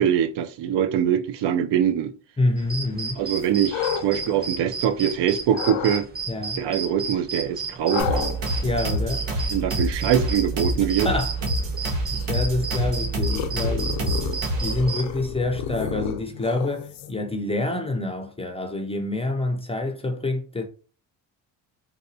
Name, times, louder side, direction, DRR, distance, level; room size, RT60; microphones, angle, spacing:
voice 1, 0.0-2.1 3.2-6.1 6.6-8.3 9.5-11.1, right 9 dB, 70° right, 0.6 m, -23 dB
voice 2, 2.4-3.2 6.3-6.6 8.6-9.3 11.0-11.4 12.0-14.3 14.6-20.6, left 2 dB, 15° left, 0.4 m, -27 dB
sound 1, 2.6-15.1, right 4 dB, 20° right, 0.7 m, -34 dB
sound 2, 3.4-5.1 5.5-6.0 7.9-17.3, left 9 dB, 90° left, 0.6 m, -34 dB
sound 3, 8.0-14.9, right 1 dB, 90° right, 1.1 m, -27 dB
4.0 x 2.3 x 2.6 m
cardioid pair, 95°, 44 cm